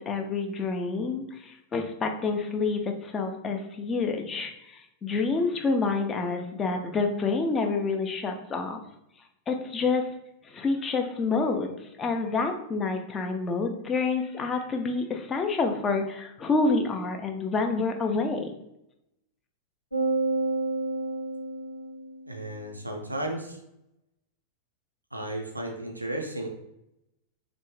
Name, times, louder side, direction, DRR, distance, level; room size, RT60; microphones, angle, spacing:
voice 1, 0.0-8.8 9.5-10.1 10.4-18.5, left 4 dB, 25° left, 4 dB, 0.4 m, -28 dB
sound 1, 19.9-22.4, right 2 dB, 85° left, 0.6 m, -29 dB
voice 2, 22.3-23.6 25.1-26.5, right 1 dB, 85° right, 2 dB, 0.4 m, -34 dB
3.4 x 2.0 x 3.1 m, 0.84 s
figure-of-eight pair, 90°, 0 cm